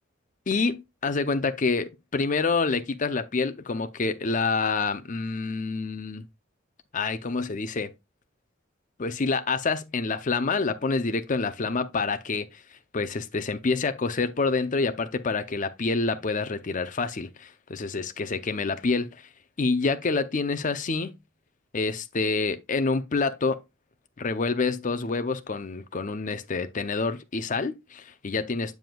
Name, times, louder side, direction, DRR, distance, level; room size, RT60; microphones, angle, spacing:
voice 1, 0.5-6.2 6.9-7.9 9.0-12.6 12.9-19.3 19.6-21.1 21.7-23.6 24.2-28.7, left 4 dB, 40° left, 0.6 m, -27 dB
7.7 x 7.1 x 2.3 m
head